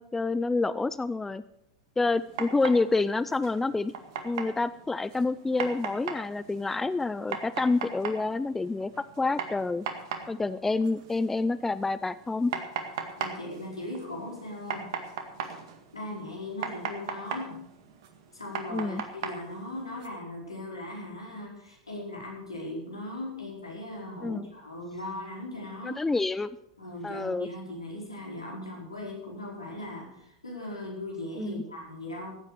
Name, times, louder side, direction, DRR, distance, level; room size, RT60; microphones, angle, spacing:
voice 1, 0.0-1.4 2.0-3.9 4.2-8.9 9.2-9.9 10.3-12.5 18.7-19.0 24.2-24.5 25.8-26.5 27.0-27.5 31.4-31.6, left 3 dB, 10° left, 16 dB, 0.5 m, -28 dB
sound 1, 2.1-20.1, right 7 dB, 60° right, 1.9 m, -39 dB
voice 2, 13.2-14.9 15.9-17.5 18.3-26.0 26.8-32.4, left 1 dB, 90° left, -2 dB, 4.8 m, -39 dB
15.0 x 9.0 x 6.7 m, 0.81 s
figure-of-eight pair, 90°, 3 cm